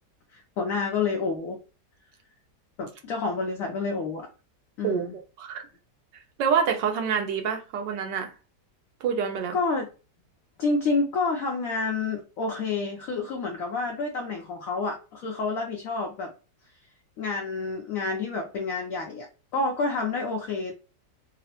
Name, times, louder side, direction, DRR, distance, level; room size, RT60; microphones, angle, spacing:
voice 1, 0.3-1.6 2.8-4.3 4.8-5.2 9.5-9.9 10.6-16.3 17.2-19.3 19.5-20.7, left 3 dB, 65° left, 0.8 m, -29 dB
voice 2, 6.4-8.3 9.0-9.6, right 7 dB, 85° right, 1.4 m, -26 dB
3.7 x 2.0 x 2.9 m
omnidirectional pair, 1.9 m